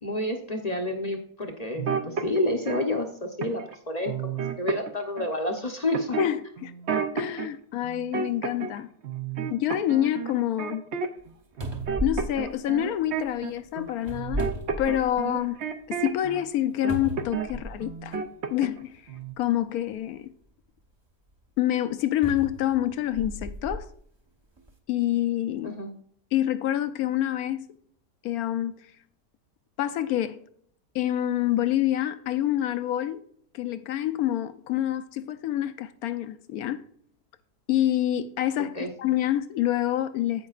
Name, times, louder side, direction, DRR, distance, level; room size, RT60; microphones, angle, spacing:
voice 1, 0.0-4.3 4.6-6.2 25.6-25.9 38.7-38.9, left 1 dB, 35° left, 0.7 m, -29 dB
sound 1, 1.8-2.8 3.4-3.8 4.1-5.3 5.9-7.5 7.8-8.8 9.0-11.3 11.6-16.4 16.8-17.5 17.8-18.8 19.1-19.3, right 6 dB, 55° right, 0.9 m, -31 dB
voice 2, 6.2-6.7 7.1-8.9 9.5-10.8 12.0-15.6 15.9-18.2 18.5-19.0 19.4-20.3 21.6-23.9 24.9-25.8 26.3-27.7 28.2-28.8 29.8-30.4 30.9-33.2 33.5-36.9 37.7-40.5, left 12 dB, 80° left, 1.1 m, -27 dB
sound 2, 11.2-11.3 11.6-13.3 14.0-15.4 15.8-15.9 16.9-18.0 18.9-19.1 22.2-23.9 24.6-24.7, right 1 dB, 20° right, 0.8 m, -35 dB
15.0 x 5.4 x 2.4 m
omnidirectional pair, 1.6 m